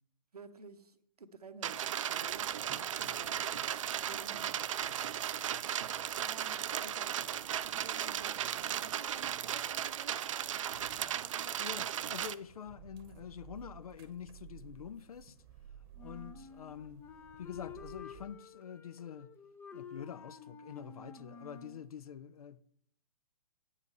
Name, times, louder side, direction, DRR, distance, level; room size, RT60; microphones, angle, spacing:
voice 1, 0.3-3.4 3.9-4.5 6.1-10.8 11.2-11.9, right 4 dB, 85° right, 0.8 m, -53 dB
sound 1, 1.6-12.3, right 10 dB, 55° right, 0.4 m, -36 dB
sound 2, 2.1-18.3, right 8 dB, 35° right, 0.9 m, -58 dB
voice 2, 11.6-15.4 16.0-17.0 17.4-19.3 19.7-22.6, left 8 dB, 70° left, 0.5 m, -46 dB
Wind instrument woodwind instrument, 16.0-21.8, left 6 dB, 10° left, 0.5 m, -51 dB
8.2 x 4.9 x 5.4 m
figure-of-eight pair, 125°, 19 cm